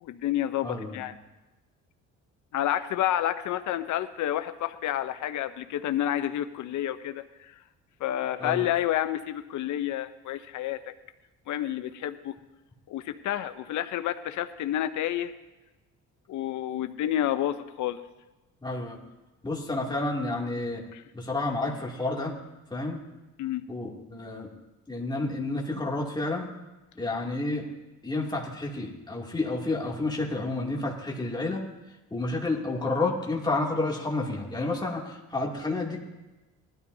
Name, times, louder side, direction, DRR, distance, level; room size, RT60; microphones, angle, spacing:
voice 1, 0.0-1.2 2.5-7.5 8.0-10.8 11.5-12.3 12.9-15.3 16.3-18.0 20.9-21.0 23.4-23.6, left 12 dB, 70° left, 10 dB, 0.7 m, -29 dB
voice 2, 0.6-1.0 8.4-8.6 18.6-19.0 19.4-20.8 21.1-22.3 22.7-23.0 23.7-24.5 24.9-26.5 27.0-27.7 28.0-31.6 32.1-36.0, left 2 dB, 15° left, -2 dB, 2.5 m, -30 dB
19.5 x 12.5 x 2.7 m, 1.1 s
cardioid pair, 90°, 30 cm